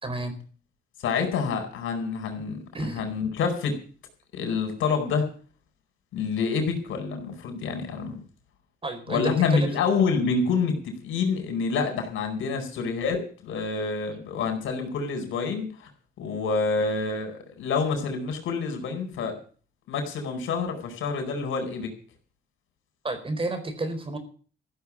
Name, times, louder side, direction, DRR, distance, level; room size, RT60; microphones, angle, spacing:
voice 1, 0.0-0.3 2.4-3.0 8.8-9.7 23.0-24.2, right 2 dB, 25° right, 8 dB, 4.4 m, -31 dB
voice 2, 1.0-3.8 4.3-5.3 6.1-8.2 9.1-15.9 16.2-19.3 19.9-21.9, left 5 dB, 80° left, 5 dB, 4.7 m, -27 dB
15.0 x 7.3 x 9.9 m, 0.41 s
cardioid pair, 90°, 20 cm